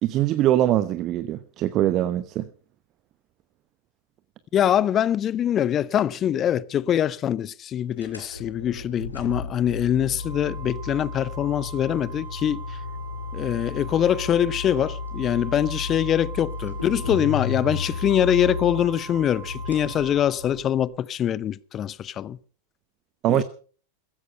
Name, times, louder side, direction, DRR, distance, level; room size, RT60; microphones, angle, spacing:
voice 1, 0.0-2.4 23.2-23.4, right 13 dB, 35° right, 0.9 m, -22 dB
voice 2, 4.5-12.6 13.3-22.4 23.3-23.4, left 10 dB, 30° left, 0.7 m, -24 dB
sound 1, 8.0-20.8, left 4 dB, 85° left, 5.1 m, -34 dB
Organ, 10.2-20.9, right 7 dB, 65° left, 4.7 m, -43 dB
16.0 x 14.5 x 5.6 m
figure-of-eight pair, 90°, 0 cm